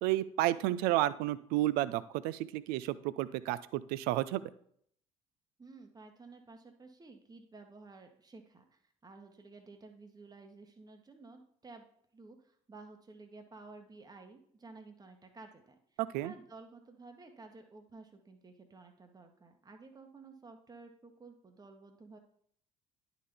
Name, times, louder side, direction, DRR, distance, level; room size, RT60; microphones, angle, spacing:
voice 1, 0.0-4.5 16.0-16.3, right 15 dB, 65° right, 17 dB, 0.4 m, -31 dB
voice 2, 5.6-11.8 12.1-22.2, right 3 dB, 20° right, 4 dB, 1.1 m, -53 dB
10.5 x 4.0 x 3.5 m, 0.64 s
figure-of-eight pair, 50°, 17 cm